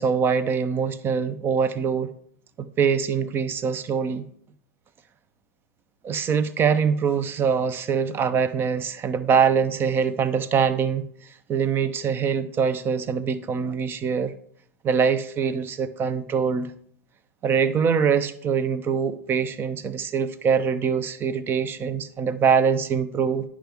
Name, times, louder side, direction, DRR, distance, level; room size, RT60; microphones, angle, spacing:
voice 1, 0.0-2.1 2.6-4.2 6.0-11.0 11.5-14.3 14.8-16.7 17.4-23.4, right 6 dB, 25° right, 13 dB, 0.7 m, -23 dB
10.0 x 6.1 x 3.5 m, 0.64 s
figure-of-eight pair, 100°, 9 cm